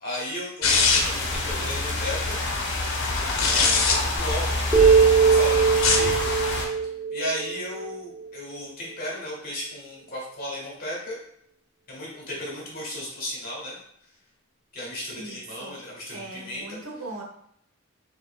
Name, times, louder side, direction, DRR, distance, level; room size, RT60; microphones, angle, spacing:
voice 1, 0.0-2.4 3.4-6.3 7.1-11.2 11.9-13.8 14.7-16.8, left 1 dB, 45° left, -3 dB, 1.7 m, -35 dB
sound 1, 0.6-1.3 3.2-4.0 5.7-6.1, left 4 dB, 85° left, 0.8 m, -21 dB
sound 2, 0.6-6.7, left 2 dB, 60° left, 1.1 m, -27 dB
sound 3, 4.7-8.2, right 6 dB, 20° right, 1.0 m, -20 dB
voice 2, 15.2-15.7 16.1-17.2, right 2 dB, 85° right, 0 dB, 1.2 m, -39 dB
6.3 x 3.0 x 2.4 m, 0.69 s
head